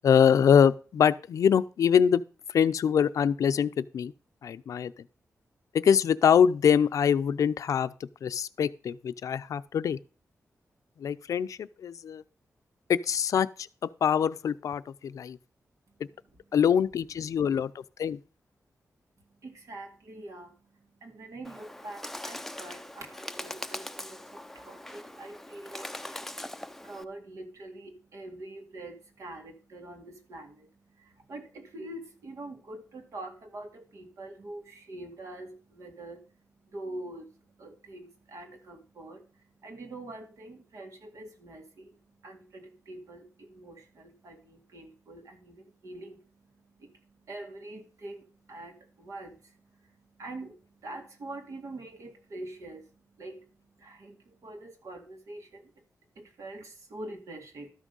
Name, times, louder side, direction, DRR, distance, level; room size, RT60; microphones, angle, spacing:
voice 1, 0.0-2.2 2.5-4.1 4.4-4.9 5.7-7.9 8.2-10.0 11.0-12.2 12.9-13.5 13.8-15.4 16.5-17.7 18.0-18.2, left 8 dB, 85° left, 0.5 m, -24 dB
voice 2, 19.2-55.8 56.2-57.7, right 2 dB, 75° right, 2.3 m, -45 dB
Bird, 21.4-27.0, left 1 dB, 5° left, 0.5 m, -41 dB
12.5 x 6.2 x 5.4 m
wide cardioid pair, 105°, 6 cm